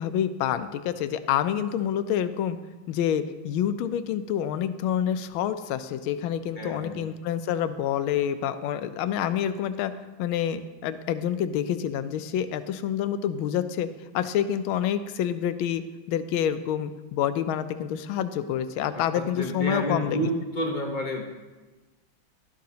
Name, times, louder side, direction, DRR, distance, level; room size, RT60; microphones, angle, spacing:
voice 1, 0.0-2.6 2.9-9.9 10.2-13.9 14.1-20.3, left 9 dB, 85° left, 11 dB, 1.4 m, -27 dB
voice 2, 6.6-7.1 18.9-21.2, equal, 35° left, 0 dB, 0.8 m, -30 dB
12.0 x 11.5 x 2.8 m, 1.2 s
omnidirectional pair, 2.2 m